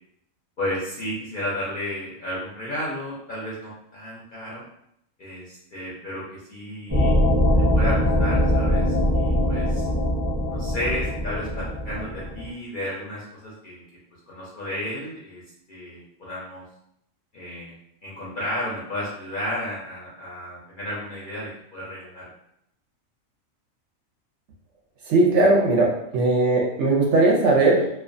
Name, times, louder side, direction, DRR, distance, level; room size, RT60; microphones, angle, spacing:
voice 1, 0.6-4.6 5.2-7.2 7.5-9.9 10.5-13.8 14.3-15.4 15.7-16.6 17.3-17.8 18.0-22.3, left 1 dB, 55° left, -7 dB, 0.6 m, -33 dB
sound 1, 6.9-12.5, left 1 dB, 20° right, 0.6 m, -22 dB
voice 2, 25.1-27.9, right 2 dB, 65° right, -2 dB, 0.8 m, -19 dB
2.3 x 2.2 x 2.5 m, 0.76 s
omnidirectional pair, 1.4 m